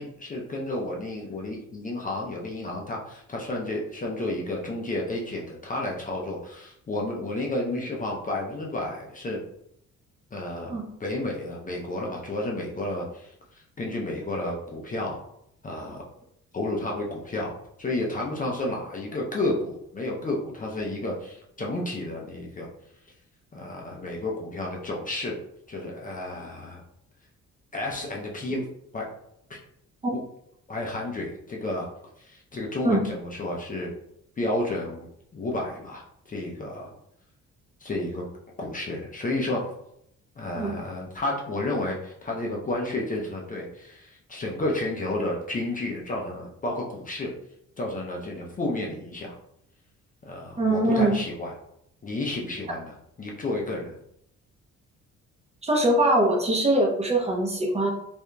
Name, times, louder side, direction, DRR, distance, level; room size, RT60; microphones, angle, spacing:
voice 1, 0.0-9.4 10.3-15.2 15.6-16.1 16.5-22.7 23.5-25.4 25.7-26.8 27.7-28.7 28.9-29.1 29.5-29.6 30.7-31.9 32.3-33.9 34.4-35.1 35.3-36.0 36.3-36.9 37.8-38.2 38.6-39.7 40.4-47.3 47.8-49.4 50.2-51.5 52.0-54.0, left 2 dB, 30° left, -1 dB, 0.5 m, -31 dB
voice 2, 50.6-51.2 55.6-57.9, right 1 dB, 20° right, -1 dB, 0.6 m, -22 dB
2.7 x 2.5 x 2.2 m, 0.74 s
cardioid pair, 90°, 30 cm